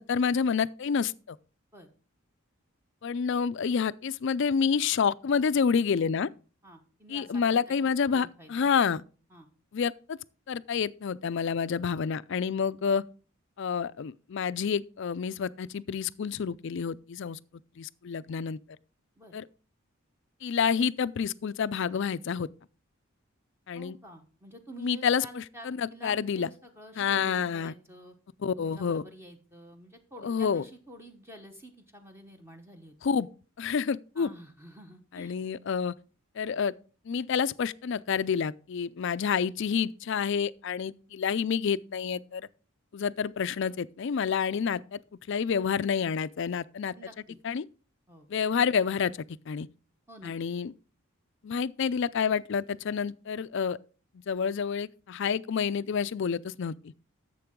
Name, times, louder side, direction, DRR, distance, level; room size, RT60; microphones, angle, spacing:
voice 1, 0.0-1.4 3.0-6.3 7.1-9.0 9.7-10.2 10.5-13.0 13.6-17.4 17.8-18.6 19.3-19.4 20.4-22.5 23.7-24.0 24.8-26.5 27.0-27.7 28.4-29.0 30.2-30.6 33.0-33.3 33.6-34.3 35.1-35.9 36.4-36.7 37.1-42.5 42.9-45.0 45.3-46.9 47.4-47.6 48.3-49.1 49.5-49.7 50.2-50.7 51.4-53.8 54.3-56.9, left 6 dB, 55° left, 0.4 m, -28 dB
voice 2, 6.6-7.7 8.1-8.7 9.3-9.5 19.2-19.3 23.7-28.1 28.6-32.9 34.2-35.4 46.9-47.4 48.1-48.3 50.1-50.3, right 1 dB, 10° right, 1.0 m, -49 dB
11.5 x 7.6 x 3.7 m
head